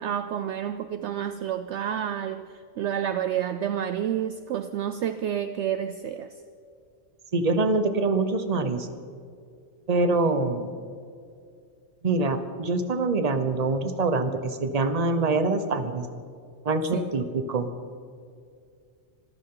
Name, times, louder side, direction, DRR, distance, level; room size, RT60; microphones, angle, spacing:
voice 1, 0.0-2.5 2.8-6.3 16.9-17.0, right 9 dB, 65° right, 11 dB, 0.8 m, -29 dB
voice 2, 7.3-8.9 9.9-10.7 12.0-16.1 16.6-17.7, right 3 dB, 35° right, 9 dB, 1.0 m, -25 dB
26.0 x 14.5 x 3.9 m, 2.3 s
omnidirectional pair, 1.4 m